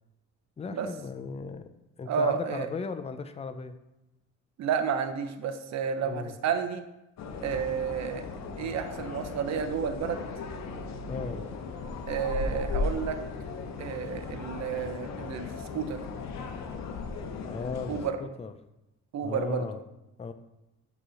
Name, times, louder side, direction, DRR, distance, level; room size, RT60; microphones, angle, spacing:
voice 1, 0.6-1.7 2.0-3.8 6.0-6.3 11.1-11.4 17.5-18.5 19.2-19.8 20.2-20.3, left 4 dB, 20° left, 9 dB, 0.4 m, -36 dB
voice 2, 2.1-2.7 4.6-6.8 7.4-8.3 8.6-10.2 12.1-13.2 13.8-16.0 17.9-18.2 19.1-19.7, right 7 dB, 60° right, 8 dB, 0.7 m, -31 dB
sound 1, 7.2-18.1, left 4 dB, 60° left, 0.7 m, -36 dB
6.6 x 3.1 x 4.9 m, 0.93 s
cardioid pair, 90°, 30 cm